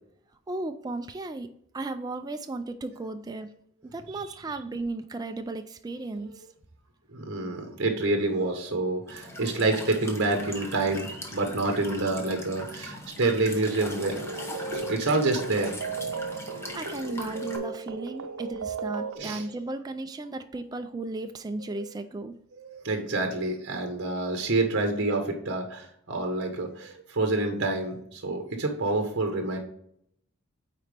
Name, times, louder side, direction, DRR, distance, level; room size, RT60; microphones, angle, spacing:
voice 1, 0.5-3.5 3.8-6.4 16.5-22.4, right 2 dB, 20° right, 7 dB, 0.3 m, -35 dB
voice 2, 7.1-14.5 14.7-15.8 16.3-16.7 17.6-17.7 19.1-19.5 21.7-21.9 22.6-29.6, right 2 dB, 55° right, 4 dB, 1.0 m, -28 dB
Walk footsteps / Chirp tweet / Stream, 9.1-17.6, left 1 dB, 10° left, 1.0 m, -40 dB
sound 1, 13.7-19.2, right 4 dB, 85° right, 0.6 m, -36 dB
8.8 x 4.2 x 3.4 m, 0.70 s
head